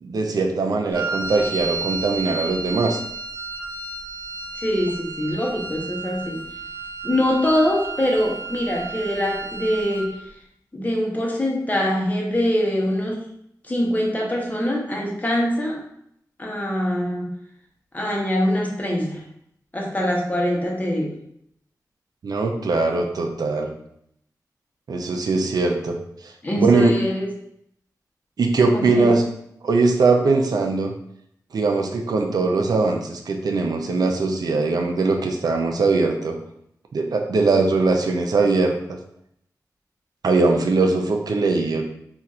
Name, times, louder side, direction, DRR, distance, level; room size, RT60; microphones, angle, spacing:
voice 1, 0.0-3.0 22.2-23.7 24.9-26.0 26.6-27.0 28.4-29.2 29.6-30.9 31.5-36.4 36.9-39.0 40.2-41.8, right 3 dB, 75° right, 3 dB, 0.4 m, -21 dB
Wind instrument woodwind instrument, 0.9-10.2, right 3 dB, 30° right, 1.0 m, -32 dB
voice 2, 4.6-6.4 7.0-10.1 10.7-13.2 13.6-15.8 16.4-17.3 17.9-19.2 19.7-21.1 26.4-27.3 28.7-29.1, equal, 25° left, -1 dB, 0.8 m, -23 dB
2.4 x 2.3 x 4.1 m, 0.73 s
wide cardioid pair, 75°, 7 cm